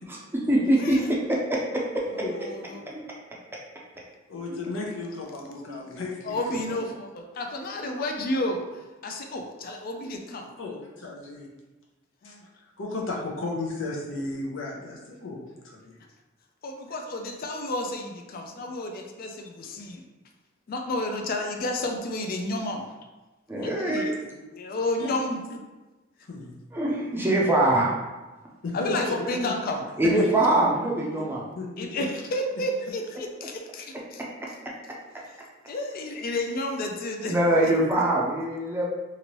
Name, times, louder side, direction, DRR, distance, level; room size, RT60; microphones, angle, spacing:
voice 1, 0.1-2.5 2.9-3.0 5.7-5.8 23.5-24.1 26.7-27.9 30.0-31.4 33.4-33.5 37.3-38.8, right 1 dB, 10° right, -3 dB, 0.5 m, -24 dB
voice 2, 2.1-2.8 6.2-8.6 9.0-10.5 12.2-12.4 16.6-20.0 20.7-22.8 23.6-25.6 28.7-29.9 31.8-34.2 35.7-37.4, left 1 dB, 50° left, 3 dB, 0.4 m, -31 dB
voice 3, 4.3-6.8 10.6-11.5 12.2-12.3 12.8-15.9 25.0-25.1 26.3-26.6 28.6-29.5 30.0-30.4 31.2-31.3 31.5-32.0, left 3 dB, 80° left, -1 dB, 0.7 m, -34 dB
2.9 x 2.5 x 3.0 m, 1.1 s
head